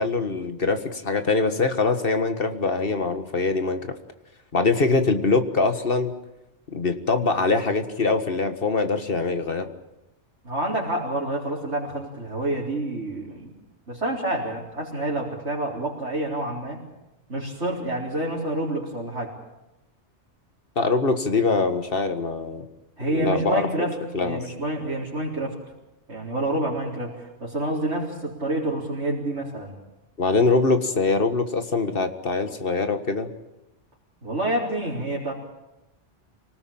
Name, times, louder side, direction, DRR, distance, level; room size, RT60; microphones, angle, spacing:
voice 1, 0.0-4.0 4.5-6.1 6.7-9.7 20.8-22.7 23.1-23.9 24.1-24.4 30.2-33.3, left 3 dB, 50° left, 9 dB, 1.9 m, -23 dB
voice 2, 10.4-13.5 13.9-16.8 17.3-19.3 23.0-25.6 26.1-29.8 34.2-35.3, right 1 dB, 70° right, -6 dB, 4.6 m, -28 dB
26.0 x 19.0 x 8.8 m, 0.94 s
omnidirectional pair, 1.2 m